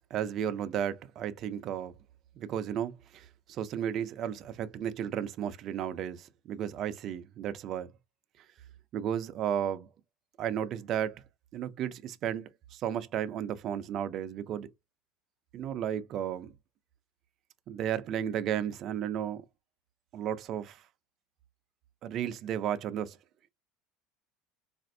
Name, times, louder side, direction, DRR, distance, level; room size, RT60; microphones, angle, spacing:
voice 1, 0.1-1.9 2.4-7.9 8.9-9.9 10.4-11.2 11.5-14.7 15.5-16.5 17.7-19.4 20.1-20.8 22.0-23.2, right 9 dB, 40° right, 0.4 m, -33 dB
4.2 x 2.4 x 2.6 m
cardioid pair, 165°, 0 cm